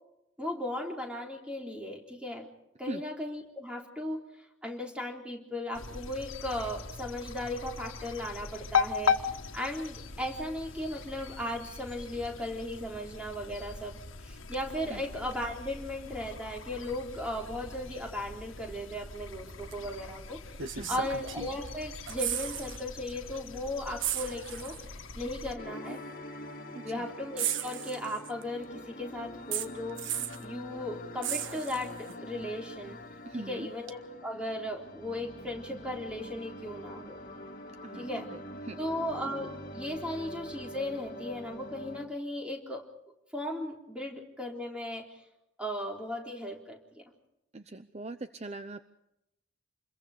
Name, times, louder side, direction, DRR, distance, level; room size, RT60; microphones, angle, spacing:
voice 1, 0.4-2.5 2.8-4.3 4.6-20.4 20.9-24.8 25.1-26.0 26.8-30.0 30.4-33.0 33.3-37.2 37.9-38.3 38.8-42.8 43.3-45.2 45.6-47.0, left 1 dB, 5° right, 1 dB, 3.7 m, -36 dB
sound 1, 5.7-25.5, left 6 dB, 90° left, 1.7 m, -38 dB
sound 2, 19.7-19.8 20.6-21.7 22.0-22.8 23.1-23.3 24.0-24.9 25.9-26.0 27.4-28.4 29.5-30.5 31.2-32.1 33.9-34.0, right 10 dB, 70° right, 1.4 m, -35 dB
voice 2, 20.6-21.1 26.9-27.1 33.2-33.7 37.8-38.1 38.6-38.8 47.5-48.9, right 2 dB, 35° right, 10 dB, 0.7 m, -40 dB
sound 3, 25.6-42.1, left 1 dB, 45° left, 2.3 m, -45 dB
28.5 x 22.0 x 5.1 m, 0.87 s
head